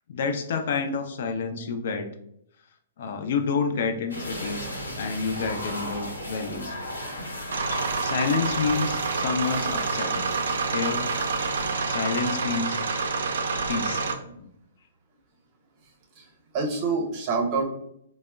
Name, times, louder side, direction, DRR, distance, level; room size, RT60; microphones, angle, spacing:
voice 1, 0.1-2.1 3.0-4.7 5.0-6.8 8.0-10.3 10.7-11.0 11.8-12.8 13.7-14.0 14.4-14.5, left 5 dB, 60° left, 7 dB, 0.5 m, -28 dB
sound 1, 4.1-11.8, left 1 dB, 90° left, 0.8 m, -36 dB
sound 2, 7.5-14.1, right 4 dB, 70° right, 0.4 m, -28 dB
voice 2, 16.1-17.7, right 4 dB, 35° right, 1 dB, 0.8 m, -27 dB
4.2 x 2.0 x 2.2 m, 0.74 s
figure-of-eight pair, 120°, 0 cm